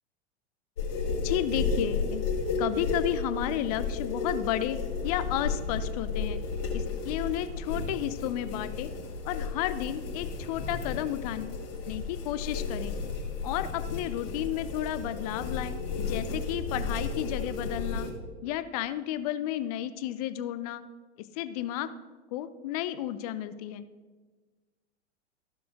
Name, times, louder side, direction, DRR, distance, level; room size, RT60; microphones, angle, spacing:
sound 1, 0.8-18.1, left 4 dB, 60° left, 2.2 m, -33 dB
voice 1, 1.2-2.2 2.6-4.8 5.0-6.4 6.7-8.9 9.2-11.6 11.9-12.9 13.4-18.1 18.4-20.8 21.4-21.9 22.3-23.8, left 12 dB, 35° left, 13 dB, 0.4 m, -32 dB
14.0 x 6.7 x 2.5 m, 1.4 s
figure-of-eight pair, 95°, 33 cm